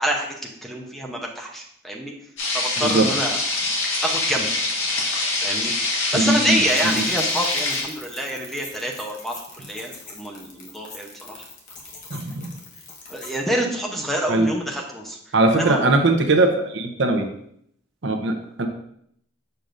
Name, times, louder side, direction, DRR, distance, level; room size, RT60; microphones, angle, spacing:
voice 1, 0.0-2.1 2.5-3.4 4.0-4.5 5.4-5.7 6.1-11.4 13.1-15.2 15.5-15.8, right 1 dB, ahead, 0 dB, 0.7 m, -27 dB
sound 1, 2.4-7.8, left 2 dB, 70° left, 1.7 m, -24 dB
voice 2, 6.1-6.5 12.1-12.5 14.3-14.5 15.3-17.3 18.0-18.7, right 2 dB, 60° right, 5 dB, 0.7 m, -20 dB
sound 2, 6.7-13.4, left 3 dB, 40° left, 1.2 m, -42 dB
6.8 x 6.0 x 2.6 m, 0.70 s
head